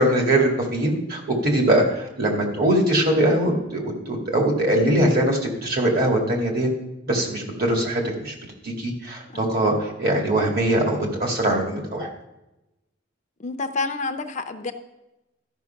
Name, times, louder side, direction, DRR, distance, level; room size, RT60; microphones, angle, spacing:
voice 1, 0.0-6.7 7.1-8.3 8.6-12.1, right 1 dB, 50° right, 1 dB, 2.2 m, -22 dB
voice 2, 13.4-14.7, left 3 dB, 40° left, 7 dB, 0.6 m, -29 dB
13.0 x 5.5 x 5.8 m, 0.98 s
head